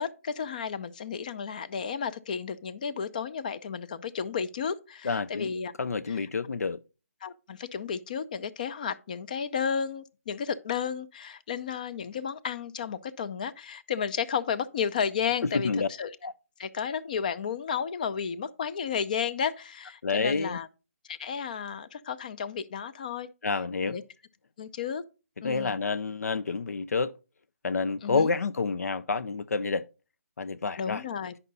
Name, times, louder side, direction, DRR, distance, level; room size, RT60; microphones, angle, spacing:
voice 1, 0.0-5.7 7.2-15.7 16.0-16.1 16.6-20.7 21.1-23.3 23.8-24.0 24.6-25.0 25.4-25.8 28.0-28.3 30.8-31.3, left 7 dB, 30° left, 0.5 m, -32 dB
voice 2, 5.0-5.5 5.8-6.8 15.5-15.9 16.2-16.3 20.0-20.6 23.4-24.0 25.4-27.1 27.6-29.8 30.4-31.0, left 4 dB, 85° left, 0.5 m, -28 dB
9.8 x 5.5 x 4.0 m
hypercardioid pair, 165°, 8 cm